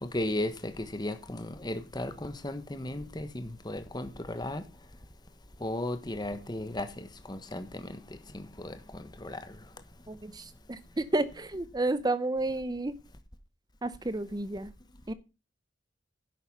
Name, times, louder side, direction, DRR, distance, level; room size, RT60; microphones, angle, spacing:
voice 1, 0.0-4.6 5.6-8.0 8.3-9.4, left 1 dB, 25° left, 1.3 m, -35 dB
voice 2, 10.1-13.0 13.8-14.7 15.1-15.2, right 2 dB, 20° right, 0.7 m, -31 dB
11.0 x 8.1 x 5.4 m
head